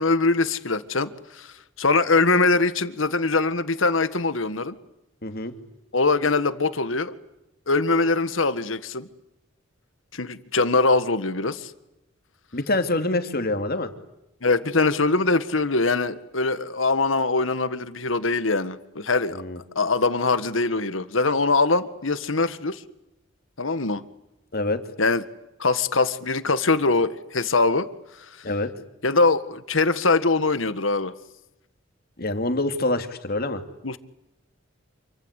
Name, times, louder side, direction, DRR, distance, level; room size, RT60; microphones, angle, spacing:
voice 1, 0.0-4.8 5.9-7.2 7.7-9.1 10.1-11.7 14.4-19.4 19.8-22.8 23.6-24.0 25.0-25.2 25.6-27.9 28.1-28.5 29.0-31.1 33.8-34.0, left 3 dB, 85° left, 12 dB, 1.8 m, -22 dB
voice 2, 5.2-5.5 12.5-13.9 19.3-19.6 24.5-24.8 28.4-28.7 32.2-33.6, left 2 dB, 55° left, 7 dB, 2.8 m, -25 dB
28.0 x 25.0 x 8.4 m, 0.89 s
head